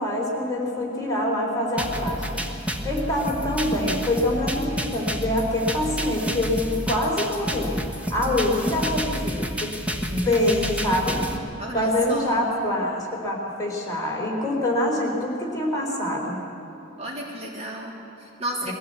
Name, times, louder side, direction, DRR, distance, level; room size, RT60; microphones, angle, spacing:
voice 1, 0.0-2.4 2.8-9.7 10.1-11.3 11.7-16.4 18.6-18.7, left 1 dB, 20° left, -2 dB, 3.8 m, -25 dB
sound 1, 1.8-11.4, equal, 5° right, 1.3 m, -29 dB
voice 2, 11.6-12.5 17.0-18.7, right 1 dB, 35° right, -2 dB, 3.1 m, -33 dB
22.0 x 16.0 x 8.3 m, 2.7 s
head